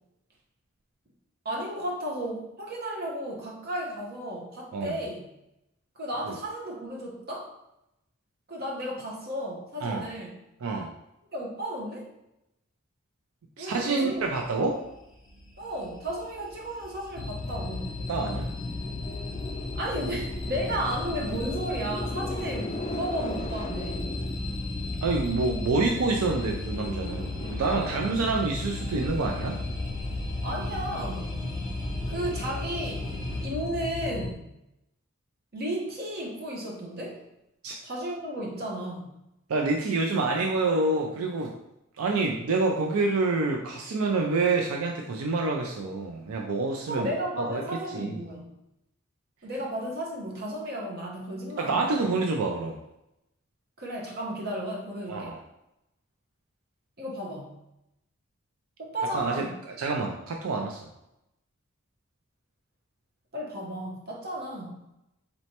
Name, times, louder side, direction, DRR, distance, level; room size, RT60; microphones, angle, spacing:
voice 1, 1.4-5.3 6.0-7.5 8.5-10.3 11.3-12.1 13.6-14.2 15.6-18.0 19.7-24.1 30.4-31.3 32.1-33.1 33.4-34.5 35.5-37.2 37.8-39.1 46.9-48.5 49.4-51.9 53.8-55.3 57.0-57.6 58.8-59.5 63.3-64.9, right 1 dB, 50° right, -2 dB, 1.0 m, -34 dB
voice 2, 13.6-14.8 18.1-18.5 25.0-29.6 37.6-37.8 39.5-41.6 42.0-47.1 47.4-47.6 47.9-48.2 51.6-52.8 55.1-55.4 59.1-60.8, right 3 dB, 85° right, 2 dB, 0.4 m, -27 dB
sound 1, 14.2-33.5, equal, 20° right, 0.9 m, -40 dB
sound 2, 17.2-34.3, left 3 dB, 25° left, 0.3 m, -34 dB
4.1 x 3.1 x 2.8 m, 0.86 s
head